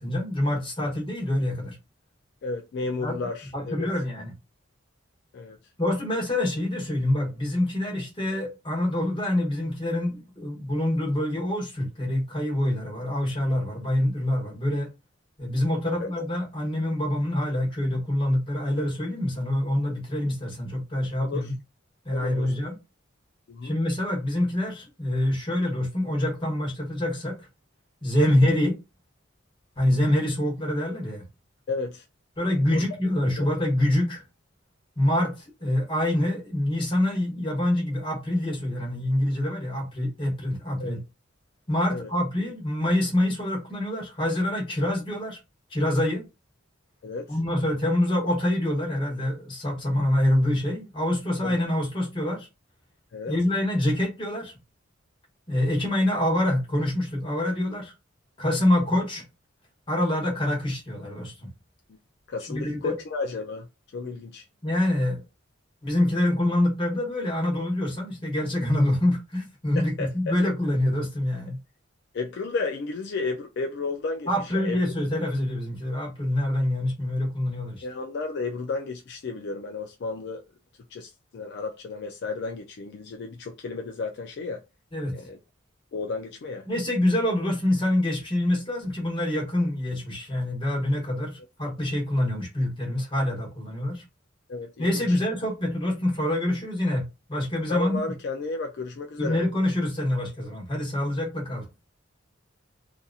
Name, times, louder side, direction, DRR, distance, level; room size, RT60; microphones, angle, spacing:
voice 1, 0.0-1.8 3.0-3.2 3.5-4.3 5.8-14.9 15.4-21.5 22.0-22.8 23.6-27.4 28.0-28.8 29.8-31.2 32.4-34.2 35.0-41.0 41.7-45.4 45.7-46.2 47.3-52.5 53.3-54.5 55.5-57.9 58.4-59.2 59.9-61.5 62.5-63.0 64.6-65.2 65.8-71.6 74.3-77.8 84.9-85.2 86.7-94.0 94.8-98.0 99.2-101.7, left 1 dB, 25° left, 1.0 m, -26 dB
voice 2, 2.4-3.9 5.3-5.6 16.0-16.1 21.2-21.5 22.1-22.5 23.5-23.7 28.3-28.4 31.7-32.0 32.7-32.8 33.4-33.5 40.8-41.0 41.9-42.1 47.0-47.4 51.4-51.6 53.1-53.3 62.3-63.7 63.9-64.5 69.8-70.1 70.5-70.6 72.1-74.8 77.8-80.4 80.9-84.6 85.1-85.4 85.9-86.7 94.5-95.2 97.7-99.4, left 3 dB, 55° left, 0.3 m, -33 dB
2.7 x 2.5 x 2.3 m
head